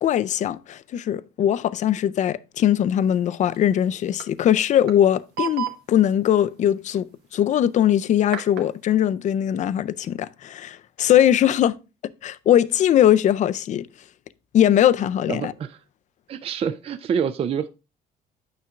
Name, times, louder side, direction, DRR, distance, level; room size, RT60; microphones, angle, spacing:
voice 1, 0.0-11.7 12.2-13.9 14.5-15.5, left 11 dB, 45° left, 0.4 m, -20 dB
sound 1, 3.5-3.6 3.9-4.3 4.9-5.0 5.4-5.8 8.3-8.7, right 11 dB, 75° right, 1.0 m, -30 dB
voice 2, 15.3-15.8 16.3-17.7, right 7 dB, 35° right, 0.4 m, -26 dB
9.4 x 5.6 x 2.4 m
cardioid pair, 110°, 17 cm